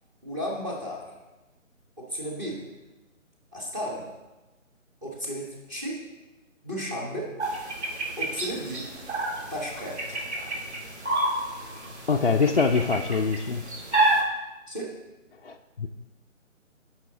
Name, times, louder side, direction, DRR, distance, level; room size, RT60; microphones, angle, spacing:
voice 1, 0.2-1.1 2.0-2.6 3.5-4.1 5.0-6.0 6.6-7.3 8.2-8.8 9.5-10.3 14.7-14.9, equal, 15° right, -2 dB, 1.4 m, -34 dB
sound 1, 7.4-14.2, right 2 dB, 55° right, 2.5 m, -29 dB
voice 2, 12.1-13.7 15.4-15.9, left 4 dB, 45° left, 1 dB, 0.5 m, -24 dB
16.5 x 5.8 x 3.9 m, 1.1 s
figure-of-eight pair, 160°, 39 cm